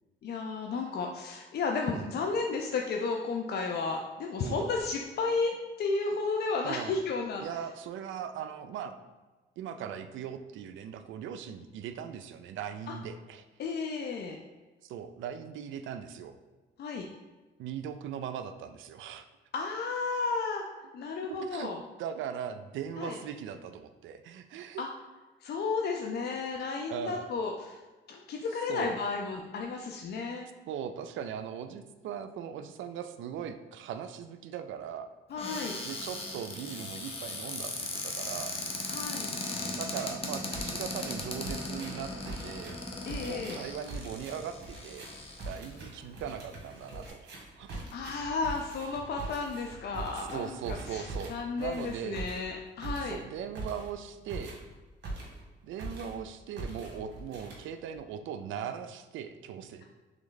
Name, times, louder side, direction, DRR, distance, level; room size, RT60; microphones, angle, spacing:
voice 1, 0.2-7.4 12.9-13.0 13.6-14.4 16.8-17.1 19.5-20.7 20.9-21.8 23.0-23.2 24.8-24.9 25.4-27.8 28.1-30.5 35.3-35.7 38.9-39.3 43.1-43.6 47.9-53.2, left 4 dB, 55° left, 1 dB, 0.5 m, -33 dB
voice 2, 6.6-7.0 7.4-9.0 9.6-13.4 14.8-16.4 17.6-19.3 21.2-21.7 22.0-24.8 26.7-27.3 28.7-28.9 30.7-35.1 35.8-38.6 39.8-42.8 43.2-45.1 45.4-47.8 50.1-52.3 53.0-54.6 55.6-59.8, right 8 dB, 75° right, 9 dB, 0.4 m, -39 dB
Cupboard open or close, 35.4-45.7 46.4-46.5 46.8-47.1, left 2 dB, 30° left, 0.8 m, -38 dB
sound 1, 39.8-40.2 40.5-55.5 55.8-56.3 56.6-58.0, right 2 dB, 60° right, 1.3 m, -42 dB
3.4 x 3.1 x 3.9 m, 1.2 s
cardioid pair, 90°, 20 cm